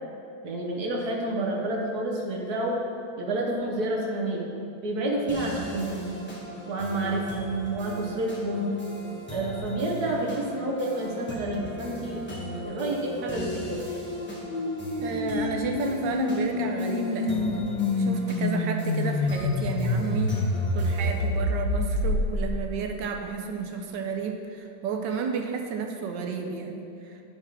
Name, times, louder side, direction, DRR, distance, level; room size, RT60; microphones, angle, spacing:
voice 1, 0.4-2.8 3.2-4.4 4.8-6.2 6.7-8.7 9.3-13.9, right 1 dB, 60° right, -2 dB, 1.4 m, -29 dB
sound 1, 5.3-21.3, right 1 dB, 5° left, 1.0 m, -39 dB
sound 2, 12.6-22.7, left 2 dB, 90° left, 1.6 m, -28 dB
voice 2, 14.9-20.4 20.7-27.2, right 5 dB, 75° right, 3 dB, 1.2 m, -32 dB
9.2 x 3.5 x 5.7 m, 2.8 s
omnidirectional pair, 2.1 m